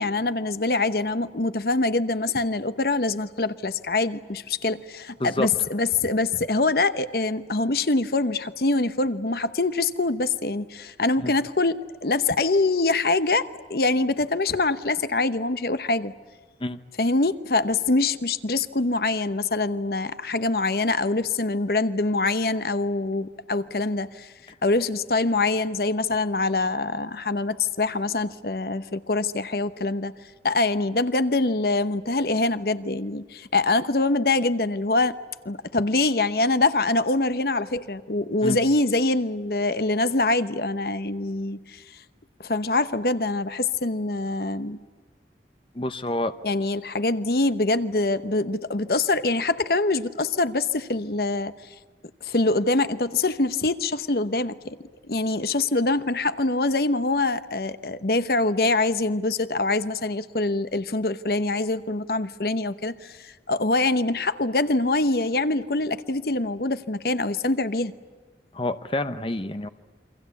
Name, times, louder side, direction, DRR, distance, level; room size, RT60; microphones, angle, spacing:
voice 1, 0.0-16.1 17.0-24.3 24.6-30.1 30.4-35.2 35.4-42.0 42.4-44.8 46.4-51.5 52.2-54.8 55.1-67.9, left 2 dB, 60° left, 12 dB, 0.9 m, -24 dB
voice 2, 45.7-46.3 68.5-69.7, left 1 dB, 30° left, 10 dB, 0.9 m, -28 dB
29.0 x 24.0 x 8.4 m, 1.3 s
head